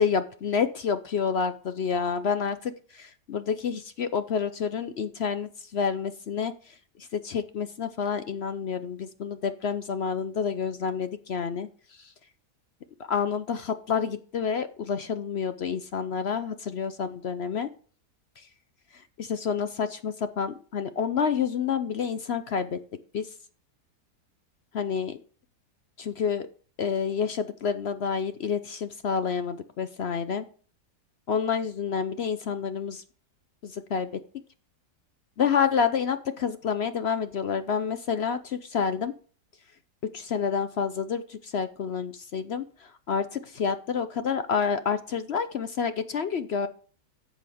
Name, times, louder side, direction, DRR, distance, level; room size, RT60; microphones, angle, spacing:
voice 1, 0.0-11.7 12.0-12.1 13.1-17.7 19.2-22.8 23.1-23.3 24.7-25.2 26.0-26.5 26.8-30.5 31.3-33.0 33.6-34.1 35.4-39.1 40.1-42.6 43.1-46.7, left 6 dB, 60° left, 11 dB, 0.7 m, -28 dB
11.0 x 8.0 x 3.5 m, 0.42 s
omnidirectional pair, 1.7 m